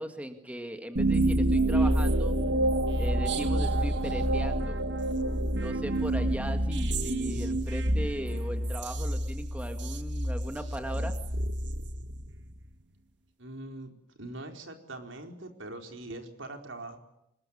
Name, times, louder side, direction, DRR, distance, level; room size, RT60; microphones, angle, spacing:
voice 1, 0.0-2.3 2.9-4.8 5.6-11.1, equal, 5° right, 6 dB, 2.0 m, -38 dB
sound 1, 1.0-12.5, right 1 dB, 60° right, 1.7 m, -28 dB
voice 2, 13.4-13.9 14.2-17.0, right 2 dB, 80° right, 4 dB, 4.5 m, -42 dB
26.0 x 22.0 x 9.9 m, 0.82 s
head